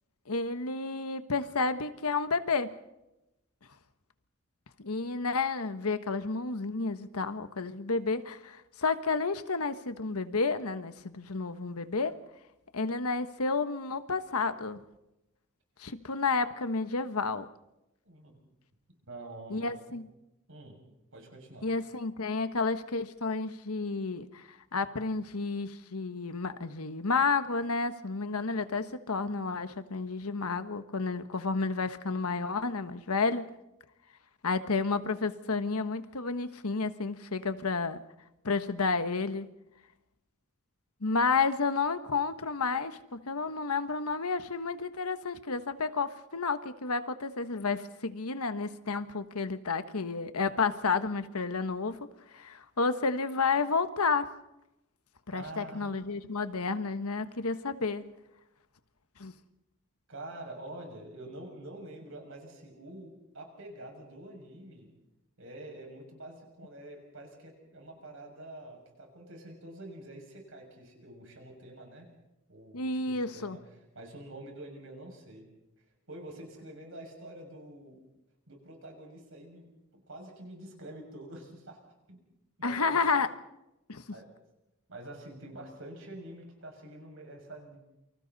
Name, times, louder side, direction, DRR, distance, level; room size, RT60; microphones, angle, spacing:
voice 1, 0.3-2.7 4.8-12.1 12.7-14.8 15.8-17.5 19.5-20.0 21.6-33.5 34.4-38.0 38.4-39.5 41.0-52.0 52.3-54.3 55.3-58.0 59.2-59.3 72.7-73.6 82.6-83.3 83.9-84.0, left 4 dB, 85° left, 10 dB, 1.3 m, -31 dB
voice 2, 19.0-20.0 20.5-20.8 21.1-21.7 55.3-55.9 60.1-64.9 65.4-72.1 72.5-75.5 75.8-78.0 78.5-81.8 82.1-82.2 82.6-83.0 84.1-84.3 84.9-87.8, right 1 dB, 60° right, 2 dB, 6.5 m, -47 dB
28.5 x 25.0 x 4.1 m, 0.91 s
head